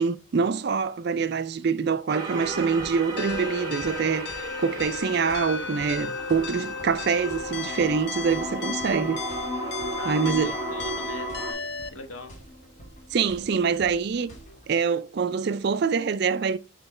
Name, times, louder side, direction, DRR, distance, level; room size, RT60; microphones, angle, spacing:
voice 1, 0.0-9.2 10.0-10.6 13.1-14.3 14.7-16.6, right 5 dB, 50° right, 0.4 m, -25 dB
sound 1, 2.1-11.5, right 1 dB, 20° right, 1.2 m, -34 dB
sound 2, 2.4-14.7, right 1 dB, 35° left, 1.4 m, -48 dB
sound 3, 3.2-11.9, left 5 dB, 50° left, 0.5 m, -35 dB
voice 2, 10.0-12.4, left 2 dB, 85° left, 1.2 m, -41 dB
6.7 x 4.4 x 3.1 m
head